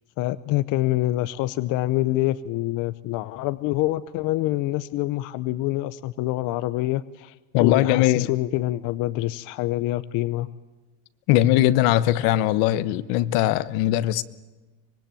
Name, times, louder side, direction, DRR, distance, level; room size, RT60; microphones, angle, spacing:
voice 1, 0.2-10.5, left 16 dB, 60° left, 0.8 m, -26 dB
voice 2, 7.5-8.3 11.3-14.2, left 14 dB, 85° left, 1.2 m, -20 dB
25.0 x 22.5 x 9.1 m
cardioid pair, 170°, 36 cm